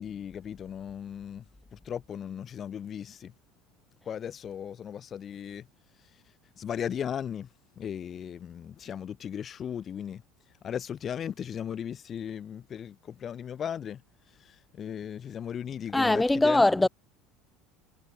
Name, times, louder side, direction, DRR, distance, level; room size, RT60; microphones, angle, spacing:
voice 1, 0.0-1.4 1.7-3.3 4.1-5.7 6.6-7.5 7.8-10.2 10.6-14.0 14.4-16.9, left 8 dB, 30° left, 4.0 m, -37 dB
voice 2, 15.9-16.9, left 2 dB, 5° left, 1.2 m, -21 dB
cardioid pair, 145°, 0 cm